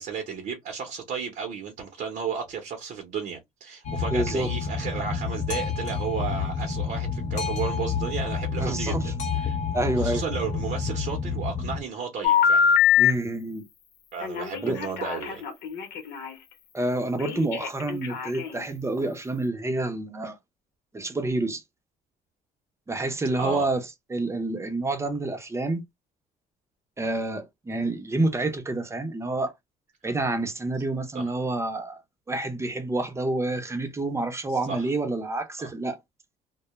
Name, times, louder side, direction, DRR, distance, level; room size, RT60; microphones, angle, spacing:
voice 1, 0.0-9.6 10.0-12.7 14.1-15.4 23.3-23.6 31.1-31.3 34.7-34.9 35.6-35.7, right 6 dB, 55° right, 0.8 m, -33 dB
Boat Water vehicle, 3.8-11.8, left 5 dB, 45° left, 0.7 m, -29 dB
voice 2, 4.1-4.5 8.6-9.1 9.7-10.2 13.0-13.7 14.6-14.8 16.7-20.4 20.9-21.6 22.9-25.8 27.0-29.5 30.0-32.0 32.3-36.0, right 2 dB, 15° right, 0.6 m, -28 dB
Telephone, 12.2-13.1 14.2-16.4 17.2-18.7, left 7 dB, 75° left, 0.9 m, -23 dB
2.2 x 2.1 x 3.0 m
cardioid pair, 110°, 17 cm